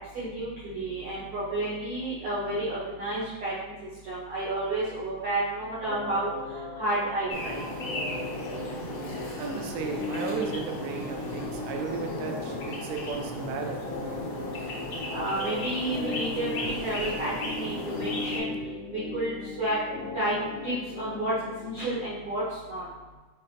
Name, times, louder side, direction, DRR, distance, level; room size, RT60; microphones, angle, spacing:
voice 1, 0.0-3.7 4.0-6.3 6.7-7.6 15.1-18.6 18.9-19.8 20.1-20.4 20.6-21.3 21.6-22.8, right 1 dB, 70° right, -8 dB, 1.3 m, -31 dB
sound 1, 5.8-21.8, left 3 dB, 80° left, 2.3 m, -38 dB
sound 2, 7.3-18.4, left 1 dB, 65° left, 1.4 m, -35 dB
voice 2, 9.2-13.8 19.1-19.2, right 5 dB, 90° right, 3 dB, 2.2 m, -35 dB
6.0 x 3.1 x 2.8 m, 1.3 s
omnidirectional pair, 3.8 m